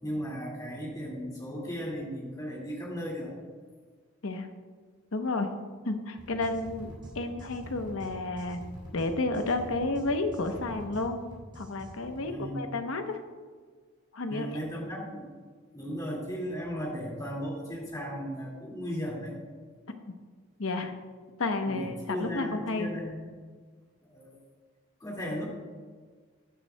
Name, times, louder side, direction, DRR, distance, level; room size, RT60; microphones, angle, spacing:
voice 1, 0.0-3.3 12.2-12.7 14.3-15.3 15.7-19.4 21.6-23.3 24.0-24.4 25.0-25.5, equal, 15° left, -3 dB, 2.1 m, -36 dB
voice 2, 5.1-5.5 5.9-8.6 8.9-11.2 11.6-13.2 14.1-14.5 19.9-20.1 20.6-20.9 21.4-22.9, left 2 dB, 75° left, 7 dB, 0.9 m, -31 dB
sound 1, 6.2-12.3, equal, 20° right, 2.5 m, -45 dB
14.5 x 9.2 x 2.2 m, 1.5 s
head